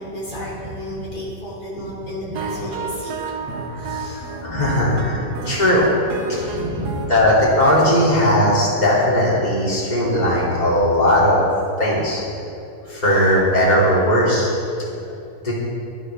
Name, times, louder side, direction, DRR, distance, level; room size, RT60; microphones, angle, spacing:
voice 1, 0.0-4.9 5.2-5.5 6.3-7.2, equal, 90° left, -7 dB, 4.2 m, -31 dB
sound 1, 2.4-8.4, right 3 dB, 85° right, 1.6 m, -32 dB
voice 2, 3.5-5.2 5.5-5.9 7.1-11.4 11.8-12.2 12.9-14.6 14.9-15.2 15.4-15.5, left 1 dB, 25° left, -7 dB, 2.8 m, -18 dB
16.5 x 11.5 x 3.4 m, 2.6 s
omnidirectional pair, 1.7 m